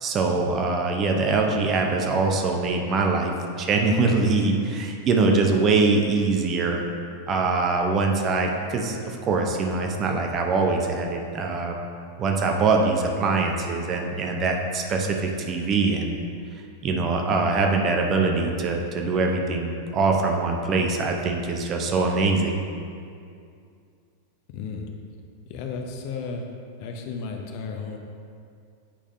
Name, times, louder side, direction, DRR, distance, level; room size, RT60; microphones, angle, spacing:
voice 1, 0.0-6.8 7.3-11.8 12.2-16.2 16.8-22.6, right 3 dB, 30° right, 2 dB, 0.7 m, -23 dB
voice 2, 24.5-24.9 25.5-26.5 26.8-28.0, left 4 dB, 45° left, 2 dB, 0.6 m, -33 dB
8.6 x 4.9 x 2.6 m, 2.4 s
figure-of-eight pair, 90°, 0 cm